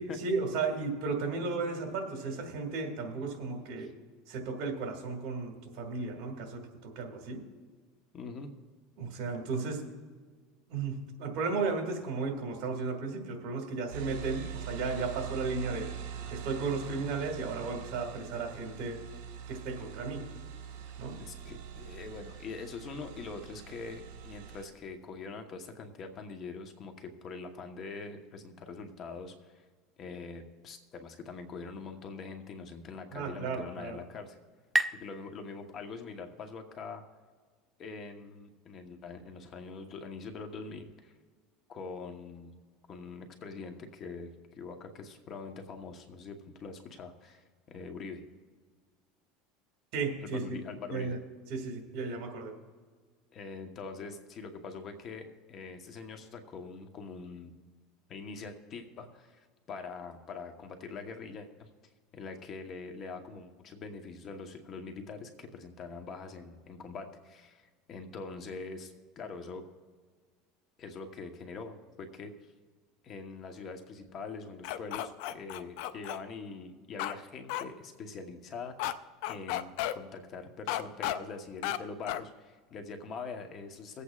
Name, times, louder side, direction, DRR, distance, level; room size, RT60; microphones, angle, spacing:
voice 1, 0.0-3.9 4.3-7.4 9.0-9.8 10.7-15.9 16.3-19.0 19.5-20.2 21.0-21.2 33.1-34.0 49.9-50.4 50.9-51.2 51.5-52.5, right 4 dB, 60° right, 3 dB, 2.2 m, -34 dB
voice 2, 8.1-8.5 21.2-29.6 30.0-34.4 34.9-37.0 37.8-41.1 41.7-42.5 42.9-48.2 50.2-51.2 53.3-57.5 58.1-61.7 62.1-69.6 70.8-72.3 73.0-78.7 79.3-84.0, left 4 dB, 40° left, 5 dB, 1.1 m, -43 dB
sound 1, 13.9-24.6, right 7 dB, 75° right, 1.7 m, -43 dB
sound 2, 33.3-36.7, right 2 dB, 5° right, 0.4 m, -37 dB
sound 3, 74.6-76.2 77.0-77.2 77.5-77.6 78.8-78.9 79.2-79.9 80.7-81.2 81.6-81.8 82.1-82.2, left 13 dB, 70° left, 0.5 m, -33 dB
23.5 x 8.3 x 2.4 m, 1.5 s
supercardioid pair, 130°, 0 cm